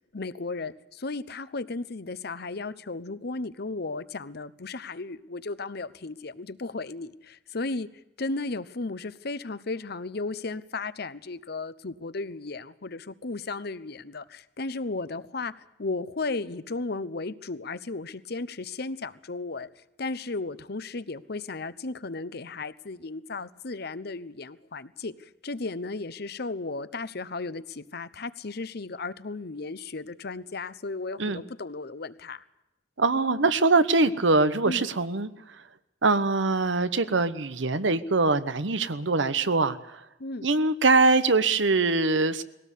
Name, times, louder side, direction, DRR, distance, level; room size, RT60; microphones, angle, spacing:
voice 1, 0.1-7.9 8.2-19.7 20.0-25.1 25.4-32.4 34.6-34.9 40.2-40.5, left 3 dB, 60° left, 15 dB, 0.9 m, -35 dB
voice 2, 33.0-35.3 36.0-40.0 40.4-42.4, right 3 dB, 90° right, 13 dB, 1.1 m, -23 dB
20.5 x 17.5 x 8.4 m, 0.91 s
head